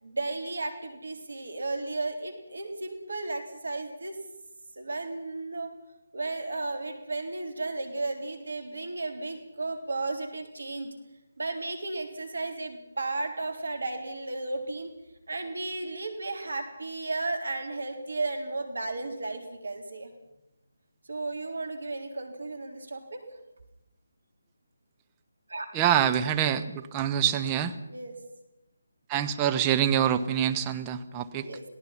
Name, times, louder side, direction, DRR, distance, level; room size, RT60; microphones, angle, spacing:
voice 1, 0.0-4.2 4.8-5.7 6.1-10.9 11.4-14.9 15.3-20.1 21.1-23.4 25.5-25.7 27.9-28.2 31.4-31.6, right 2 dB, 65° right, 5 dB, 3.7 m, -34 dB
voice 2, 25.7-27.7 29.1-31.5, right 9 dB, 15° right, 6 dB, 1.0 m, -25 dB
27.5 x 18.0 x 5.8 m, 0.92 s
figure-of-eight pair, 150°, 0 cm